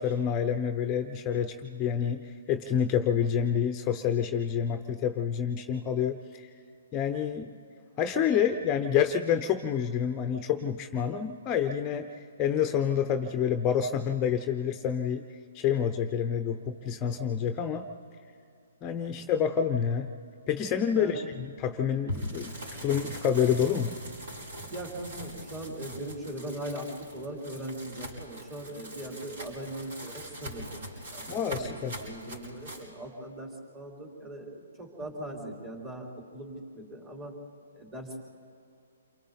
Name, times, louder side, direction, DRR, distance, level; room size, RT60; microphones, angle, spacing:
voice 1, 0.0-6.5 6.9-7.5 8.0-12.1 12.4-15.2 15.5-17.9 18.8-20.1 20.5-23.9 31.3-32.0, left 8 dB, 25° left, 8 dB, 0.8 m, -28 dB
voice 2, 20.9-21.2 24.7-37.3 37.7-38.2, right 1 dB, 20° right, -2 dB, 4.1 m, -40 dB
sound 1, 22.1-32.9, equal, 65° right, 5.7 m, -42 dB
28.5 x 23.5 x 4.1 m, 2.5 s
hypercardioid pair, 135°, 0 cm